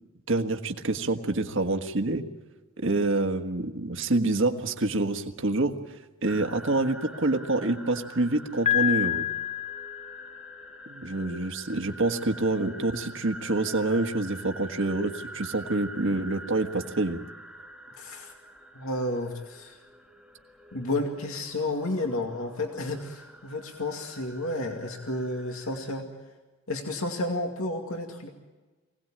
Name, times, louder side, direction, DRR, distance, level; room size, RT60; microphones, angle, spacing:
voice 1, 0.3-2.3 2.8-5.7 6.2-9.3 10.9-17.2, right 2 dB, 60° right, 6 dB, 1.6 m, -27 dB
sound 1, 6.2-26.0, right 1 dB, ahead, 1.7 m, -46 dB
Piano, 8.7-10.6, left 12 dB, 30° left, 0.6 m, -28 dB
voice 2, 18.0-18.3 18.7-19.8 20.7-26.1 26.7-28.3, left 2 dB, 75° left, 3 dB, 2.3 m, -31 dB
24.5 x 18.5 x 8.8 m, 1.2 s
head